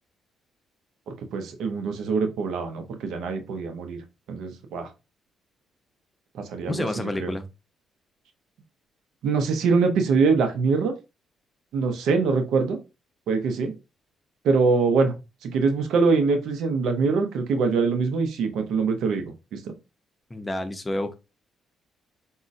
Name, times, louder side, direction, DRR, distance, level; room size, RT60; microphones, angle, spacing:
voice 1, 1.1-4.0 4.3-4.9 6.4-6.9 7.2-7.3 9.2-10.9 11.7-12.8 13.3-13.7 14.4-15.1 15.4-19.7, right 4 dB, 80° right, 0.6 m, -23 dB
voice 2, 6.7-7.4 20.3-21.1, left 1 dB, 15° left, 0.5 m, -29 dB
3.7 x 2.0 x 2.5 m
cardioid pair, 90°, 0 cm